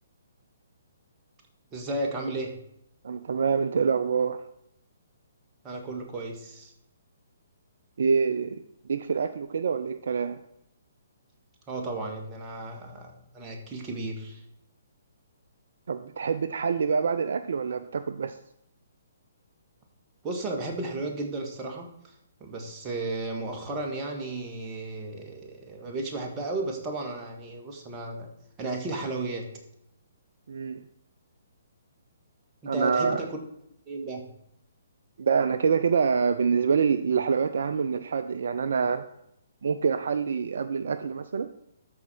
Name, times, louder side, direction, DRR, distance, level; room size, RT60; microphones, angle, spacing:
voice 1, 1.7-2.5 5.6-6.7 11.7-14.4 20.2-21.9 22.4-28.3 28.6-29.5 32.6-33.4 33.9-34.2, right 2 dB, 20° right, 1 dB, 1.7 m, -34 dB
voice 2, 3.0-4.4 8.0-8.6 8.9-10.4 15.9-18.3 30.5-30.8 32.7-33.2 35.2-39.0 39.6-41.5, right 6 dB, 60° right, 11 dB, 0.4 m, -26 dB
13.0 x 4.4 x 4.4 m, 0.77 s
figure-of-eight pair, 130°, 0 cm